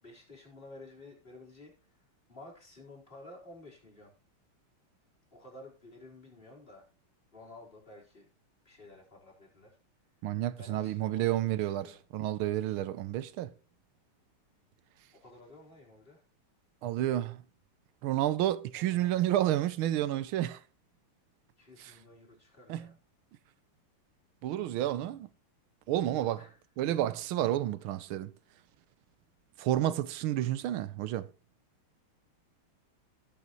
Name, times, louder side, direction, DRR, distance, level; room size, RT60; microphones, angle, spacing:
voice 1, 0.0-4.1 5.3-6.9 7.3-8.3 8.6-9.8 10.6-12.0 15.1-16.2 18.7-19.6 21.6-23.0 26.3-26.6, left 2 dB, 25° left, 4.0 m, -53 dB
voice 2, 10.2-13.5 16.8-17.4 18.0-20.6 22.7-22.9 24.4-25.3 25.9-26.4 26.8-28.3 29.6-31.3, right 13 dB, 75° right, 1.4 m, -30 dB
16.5 x 6.9 x 3.0 m
omnidirectional pair, 2.4 m